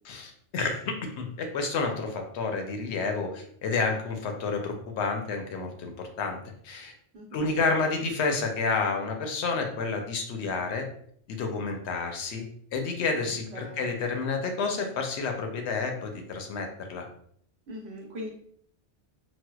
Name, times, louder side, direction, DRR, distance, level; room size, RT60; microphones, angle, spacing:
voice 1, 0.0-6.4 6.6-6.9 7.3-10.9 11.3-17.0, left 4 dB, 70° left, 3 dB, 0.8 m, -30 dB
voice 2, 7.1-7.6 13.3-13.9 17.7-18.3, equal, 65° right, -2 dB, 1.1 m, -41 dB
4.3 x 2.1 x 2.2 m, 0.65 s
omnidirectional pair, 1.2 m